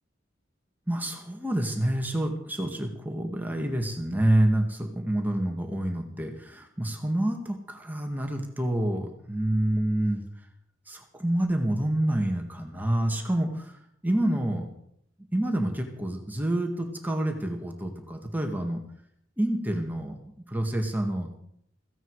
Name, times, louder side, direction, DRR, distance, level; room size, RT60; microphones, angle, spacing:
voice 1, 0.9-10.2 10.9-14.7 15.3-16.7 17.0-18.8 19.4-21.3, right 1 dB, 10° right, 2 dB, 2.0 m, -28 dB
16.5 x 16.0 x 4.9 m, 0.70 s
head